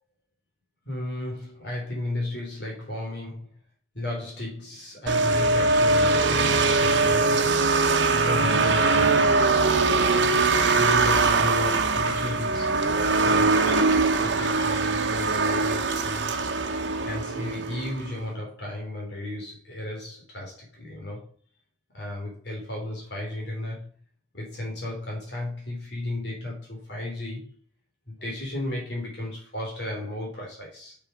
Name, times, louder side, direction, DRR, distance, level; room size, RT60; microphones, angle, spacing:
voice 1, 0.8-3.5 3.9-7.6 8.1-9.7 10.8-12.8 13.2-16.5 17.0-21.3 21.9-23.9 24.3-27.6 28.1-31.0, left 1 dB, 70° left, 3.4 m, -34 dB
sound 1, 5.1-18.1, right 3 dB, 80° right, 1.1 m, -22 dB
6.7 x 6.3 x 5.0 m
head